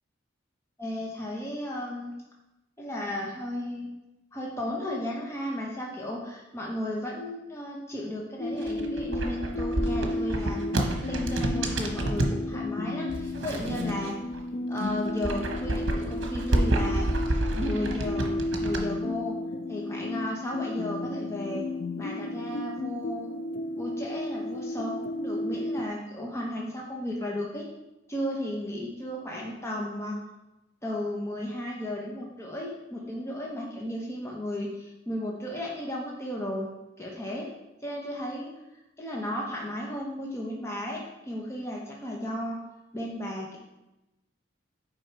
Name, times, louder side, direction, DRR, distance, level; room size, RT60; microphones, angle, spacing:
voice 1, 0.8-2.1 2.8-3.9 4.3-14.2 14.7-17.1 17.5-19.3 19.7-21.6 22.0-23.3 23.8-27.7 28.1-30.2 30.8-36.7 37.0-37.5 37.8-38.5 39.0-42.6 42.9-43.6, left 1 dB, 15° left, -2 dB, 0.9 m, -34 dB
sound 1, 8.4-25.9, left 1 dB, 45° left, 0.3 m, -33 dB
sound 2, 8.5-12.4 13.1-14.4 14.7-18.8, right 1 dB, 75° right, 1.0 m, -29 dB
6.4 x 4.6 x 4.5 m, 0.96 s
head